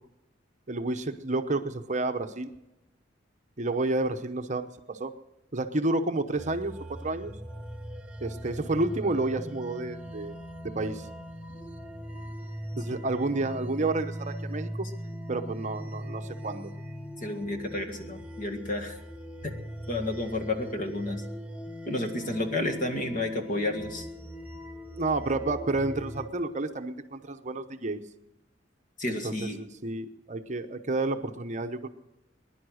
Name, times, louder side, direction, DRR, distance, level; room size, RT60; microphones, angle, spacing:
voice 1, 0.7-2.5 3.6-5.1 5.5-7.3 8.2-10.4 10.6-11.1 12.8-14.9 15.3-16.7 25.0-28.0 29.1-31.9, right 2 dB, 40° right, 7 dB, 0.9 m, -30 dB
sound 1, 6.4-26.3, equal, 5° right, 0.9 m, -40 dB
voice 2, 17.2-19.0 19.4-19.5 19.9-21.3 21.8-24.1 29.0-29.6, left 2 dB, 45° left, 6 dB, 2.0 m, -31 dB
21.0 x 11.0 x 6.4 m, 0.97 s
head